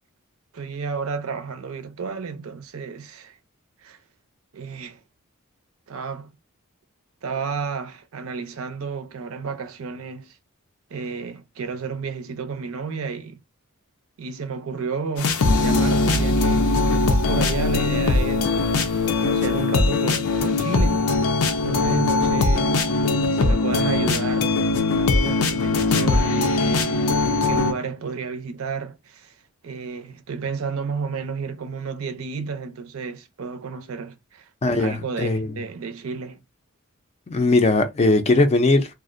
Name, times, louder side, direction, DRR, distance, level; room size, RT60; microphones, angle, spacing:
voice 1, 0.5-3.4 3.8-4.0 4.5-5.0 5.9-6.4 7.2-10.4 10.9-13.4 14.2-21.1 21.6-22.8 23.3-24.6 24.9-27.1 27.4-29.3 29.6-34.5 34.8-36.4, right 5 dB, 70° right, 0.5 m, -32 dB
sound 1, 15.2-27.7, left 3 dB, 85° left, 0.5 m, -21 dB
voice 2, 34.6-35.5 37.3-38.9, left 2 dB, 30° left, 0.4 m, -19 dB
2.4 x 2.0 x 2.5 m
head